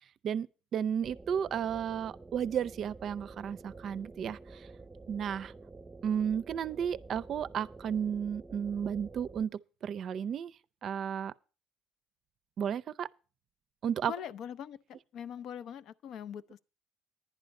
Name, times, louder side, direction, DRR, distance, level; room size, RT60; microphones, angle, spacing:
voice 1, 0.7-4.7 5.1-5.5 6.0-10.5 10.8-11.3 12.6-13.1 13.8-14.1, right 8 dB, 55° right, 0.5 m, -33 dB
sound 1, 1.0-9.5, right 3 dB, 15° right, 0.8 m, -50 dB
voice 2, 14.1-16.6, left 8 dB, 65° left, 0.5 m, -42 dB
11.0 x 9.3 x 5.3 m
supercardioid pair, 80°, 0 cm